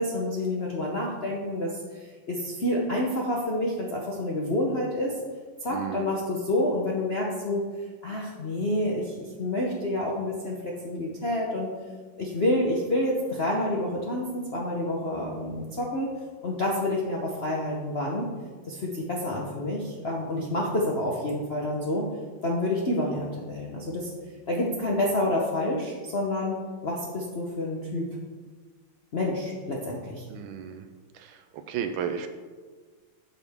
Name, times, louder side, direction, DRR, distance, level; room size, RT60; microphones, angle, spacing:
voice 1, 0.0-5.1 5.6-7.6 8.0-11.7 12.2-16.1 16.4-18.3 18.7-22.1 22.4-24.1 24.5-26.6 26.8-28.1 29.1-30.3, left 1 dB, 55° left, -3 dB, 0.7 m, -28 dB
voice 2, 5.7-6.1 30.3-30.9 31.1-32.3, right 8 dB, 75° right, 7 dB, 1.3 m, -34 dB
9.3 x 6.6 x 3.5 m, 1.5 s
omnidirectional pair, 2.4 m